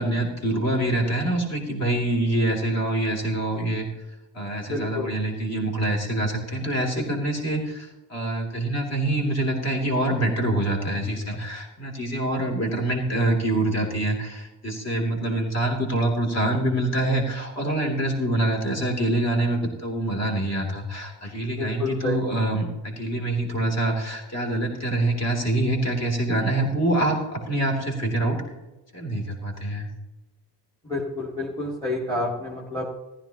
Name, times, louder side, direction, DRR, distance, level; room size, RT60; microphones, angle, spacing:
voice 1, 0.0-3.9 4.3-28.4 28.9-29.9, right 1 dB, 35° left, 0 dB, 3.1 m, -25 dB
voice 2, 4.7-5.1 21.6-22.2 30.8-32.8, left 2 dB, 10° left, -4 dB, 2.2 m, -29 dB
15.0 x 13.0 x 3.0 m, 1.1 s
cardioid pair, 120°, 43 cm